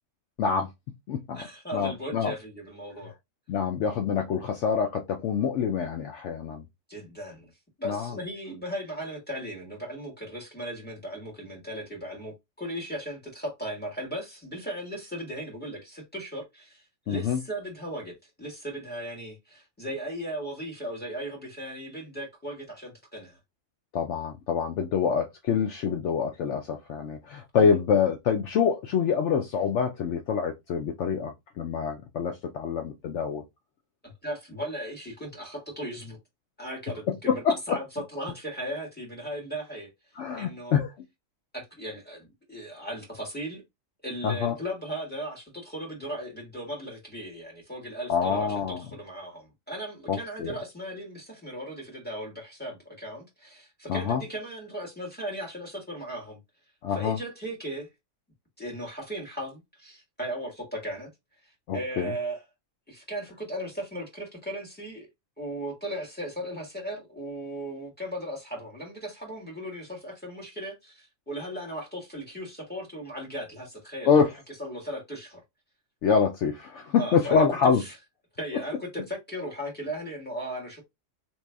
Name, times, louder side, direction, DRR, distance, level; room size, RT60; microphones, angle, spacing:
voice 1, 0.4-0.7 1.1-1.4 1.7-2.3 3.5-6.6 7.8-8.1 17.1-17.4 23.9-33.4 37.3-37.8 40.2-40.9 44.2-44.6 48.1-48.8 50.1-50.5 53.9-54.2 56.8-57.2 61.7-62.1 74.1-74.3 76.0-77.8, left 6 dB, 70° left, 0.8 m, -26 dB
voice 2, 1.3-3.1 6.9-7.5 7.8-23.4 27.5-27.8 34.0-36.2 36.6-37.8 38.1-39.9 40.3-40.7 41.5-43.6 44.0-56.4 56.9-57.9 58.6-61.1 61.7-62.4 62.9-65.1 65.4-74.2 74.6-75.4 77.0-77.4 77.8-77.9 78.4-80.8, right 1 dB, 10° left, 1.5 m, -37 dB
3.0 x 2.6 x 3.4 m
omnidirectional pair, 1.4 m